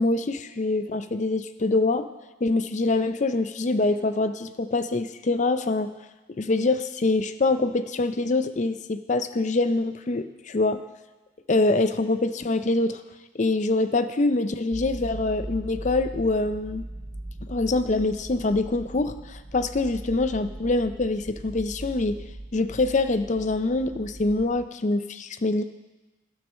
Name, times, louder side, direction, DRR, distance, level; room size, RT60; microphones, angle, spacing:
voice 1, 0.0-2.1 2.4-6.0 6.4-10.8 11.5-13.0 13.3-16.8 17.5-22.2 22.5-25.6, left 2 dB, 35° left, 11 dB, 0.5 m, -25 dB
sound 1, 14.7-24.6, right 1 dB, 25° right, 0.5 m, -39 dB
12.0 x 6.4 x 6.3 m, 1.1 s
head